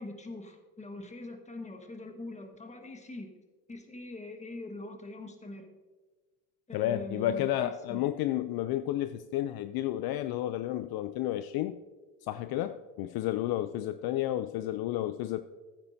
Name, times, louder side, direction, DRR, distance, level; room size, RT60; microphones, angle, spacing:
voice 1, 0.0-3.3 3.7-5.7 6.7-8.1, left 2 dB, 15° left, 5 dB, 1.4 m, -43 dB
voice 2, 6.7-11.8 12.2-15.4, left 13 dB, 60° left, 12 dB, 0.5 m, -31 dB
15.0 x 8.6 x 2.7 m, 1.3 s
cardioid pair, 105°, 43 cm